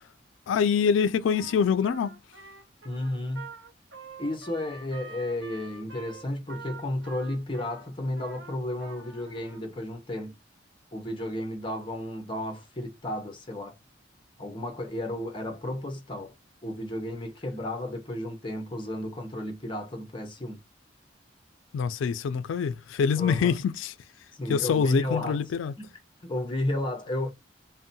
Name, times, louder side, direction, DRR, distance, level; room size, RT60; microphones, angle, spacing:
voice 1, 0.5-2.1 21.7-23.9 24.5-25.7, left 6 dB, 80° left, 0.3 m, -25 dB
Trumpet, 1.3-9.6, right 4 dB, 75° right, 1.1 m, -47 dB
voice 2, 2.8-3.5 4.2-10.3 10.9-13.7 14.4-16.3 16.6-20.6 23.2-23.6 24.3-25.4 25.8-25.9 26.2-27.3, left 1 dB, 25° left, 0.6 m, -33 dB
2.6 x 2.1 x 2.6 m
head